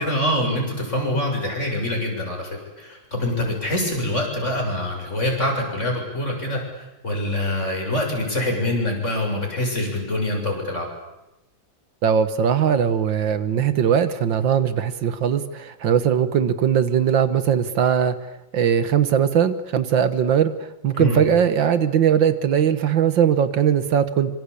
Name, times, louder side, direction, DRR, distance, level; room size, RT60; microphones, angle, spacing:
voice 1, 0.0-2.5 2.8-6.6 7.0-10.9 20.9-21.2, left 1 dB, 35° left, 1 dB, 7.6 m, -24 dB
voice 2, 12.0-18.2 18.5-24.3, right 8 dB, 75° right, 12 dB, 2.0 m, -20 dB
26.0 x 26.0 x 8.5 m, 0.94 s
omnidirectional pair, 2.0 m